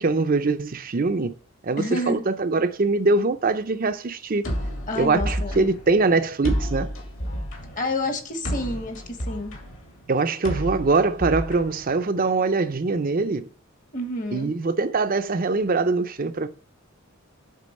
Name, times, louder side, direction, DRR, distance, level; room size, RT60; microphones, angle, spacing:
voice 1, 0.0-1.3 1.6-4.4 5.0-6.9 10.1-13.5 14.3-16.5, right 3 dB, 40° right, 0.5 m, -23 dB
voice 2, 1.8-2.2 4.9-5.7 7.8-9.5 13.9-14.5, left 1 dB, 35° left, 1.2 m, -29 dB
sound 1, 4.4-12.4, equal, 65° left, 2.6 m, -31 dB
8.4 x 3.8 x 6.4 m
head